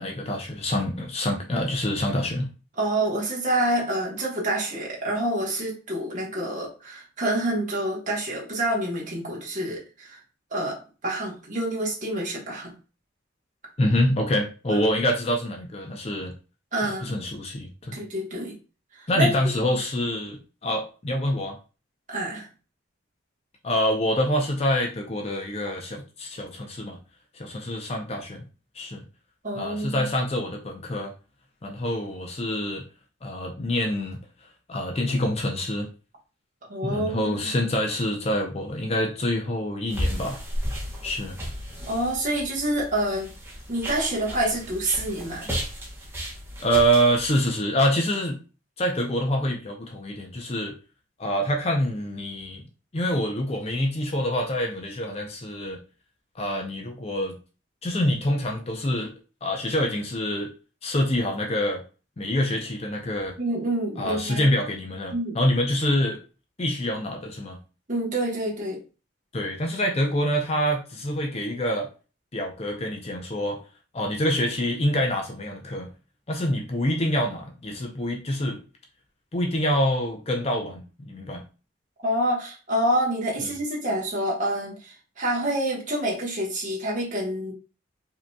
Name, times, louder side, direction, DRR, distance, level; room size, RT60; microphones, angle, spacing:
voice 1, 0.0-2.5 13.8-16.3 16.8-18.0 19.1-21.6 23.6-27.0 27.3-28.4 28.7-29.0 29.5-31.1 31.6-32.8 33.2-34.2 34.7-35.9 36.8-40.4 41.0-41.4 46.6-48.4 48.8-50.7 51.2-52.7 52.9-55.8 56.4-57.4 57.8-59.1 59.4-60.5 60.8-61.8 62.2-63.3 64.0-66.2 66.6-67.6 69.3-71.9 72.3-73.6 73.9-75.9 76.3-78.6 79.3-81.4 83.4-83.5, equal, 30° left, 2 dB, 0.5 m, -26 dB
voice 2, 2.8-10.2 10.5-12.7 16.7-17.1 17.9-18.5 18.9-19.3 19.6-19.8 22.1-22.5 29.4-30.1 36.7-37.5 41.9-43.3 43.7-45.5 63.4-64.5 65.1-65.4 67.9-68.8 82.0-87.5, right 1 dB, 35° right, -3 dB, 1.2 m, -27 dB
sound 1, 39.9-47.4, equal, 10° right, 0.9 m, -34 dB
5.0 x 2.8 x 2.2 m, 0.34 s
head